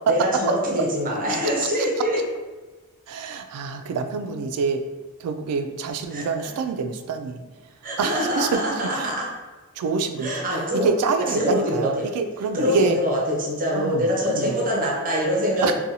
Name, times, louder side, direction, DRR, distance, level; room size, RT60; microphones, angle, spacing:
voice 1, 0.1-2.2 6.1-6.5 7.8-9.3 10.2-10.9 11.2-12.1 12.5-15.7, equal, 40° right, -2 dB, 0.6 m, -24 dB
voice 2, 3.1-4.8 5.2-7.4 8.0-8.6 8.9-9.2 9.8-10.3 10.8-13.0 13.7-14.5 15.6-15.7, right 4 dB, 85° right, 8 dB, 0.3 m, -26 dB
2.6 x 2.2 x 2.7 m, 1.2 s
head